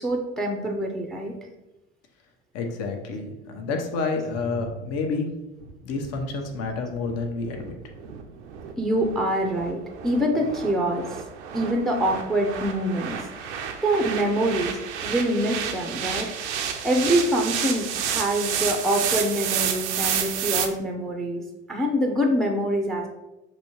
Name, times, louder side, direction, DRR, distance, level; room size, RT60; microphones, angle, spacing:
voice 1, 0.0-1.3 4.6-4.7 8.8-11.2 11.5-16.3 16.8-23.1, right 1 dB, ahead, 2 dB, 0.6 m, -25 dB
voice 2, 2.5-5.3 5.8-7.8, left 4 dB, 45° left, 3 dB, 0.9 m, -29 dB
sound 1, 5.6-20.7, right 8 dB, 75° right, 0.6 m, -31 dB
6.1 x 2.7 x 3.0 m, 0.99 s
hypercardioid pair, 70°, 35 cm